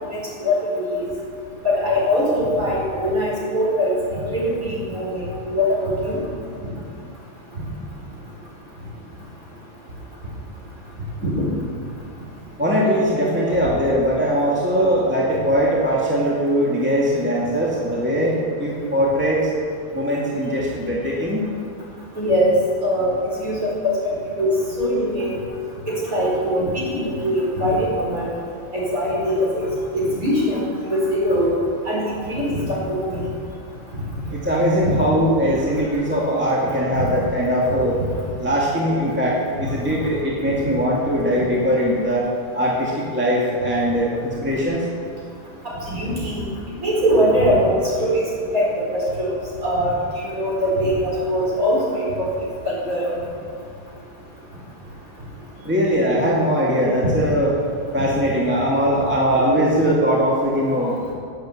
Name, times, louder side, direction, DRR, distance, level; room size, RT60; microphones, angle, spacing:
voice 1, 0.1-1.1 1.6-4.0 4.4-5.0 5.5-6.2 11.2-11.3 22.2-22.5 22.8-24.1 24.4-24.5 24.8-25.3 25.9-28.3 28.7-29.6 29.9-31.5 31.9-32.0 32.3-33.2 34.8-34.9 36.9-37.0 45.9-46.3 46.8-47.7 48.0-48.2 48.5-48.6 48.9-49.3 49.6-49.9 50.3-52.3 52.6-53.1, equal, 40° right, -5 dB, 5.1 m, -21 dB
voice 2, 12.6-19.5 19.9-21.5 34.3-38.0 38.4-42.2 42.5-44.8 55.7-57.5 57.9-60.9, equal, 5° right, -5 dB, 1.8 m, -20 dB
11.5 x 9.3 x 8.4 m, 2.3 s
omnidirectional pair, 2.4 m